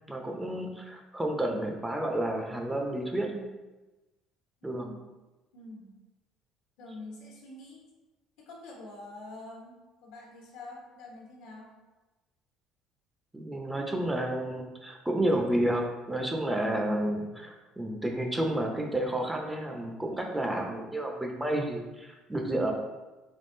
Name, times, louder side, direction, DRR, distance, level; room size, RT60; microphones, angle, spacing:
voice 1, 0.1-3.4 4.6-4.9 13.3-22.7, right 1 dB, 10° right, 2 dB, 0.5 m, -30 dB
voice 2, 4.6-5.0 5.5-5.9 6.8-7.8 8.4-9.8 10.0-11.7, left 2 dB, 85° left, -2 dB, 1.2 m, -46 dB
3.5 x 3.5 x 2.6 m, 1.1 s
cardioid pair, 105°, 0 cm